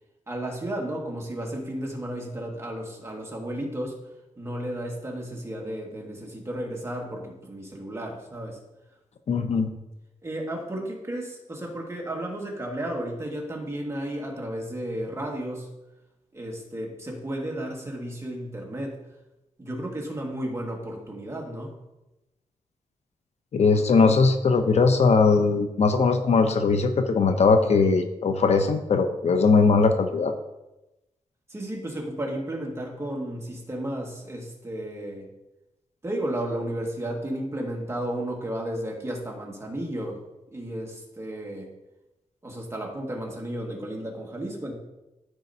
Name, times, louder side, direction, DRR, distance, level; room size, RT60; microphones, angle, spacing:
voice 1, 0.3-4.0 4.4-8.6 10.2-15.7 16.3-19.0 19.6-21.8 31.5-35.3 36.0-40.2 40.5-41.7 42.4-44.7, right 1 dB, 20° right, -1 dB, 1.9 m, -33 dB
voice 2, 9.3-9.7 23.5-30.3, left 4 dB, 60° left, 7 dB, 0.6 m, -20 dB
13.5 x 5.1 x 2.8 m, 0.98 s
wide cardioid pair, 105°, 13 cm